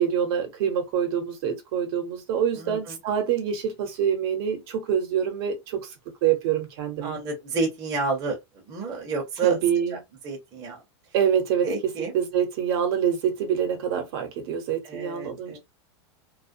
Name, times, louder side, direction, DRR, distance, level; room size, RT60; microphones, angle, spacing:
voice 1, 0.0-5.9 6.2-7.2 9.4-10.0 11.1-11.7 12.1-15.6, right 8 dB, 55° right, 0.9 m, -25 dB
voice 2, 2.5-3.0 7.0-8.4 8.7-9.6 9.9-10.0 10.2-10.8 11.6-12.1 14.8-15.6, right 4 dB, 25° right, 0.7 m, -30 dB
2.3 x 2.1 x 2.6 m
supercardioid pair, 155°, 15 cm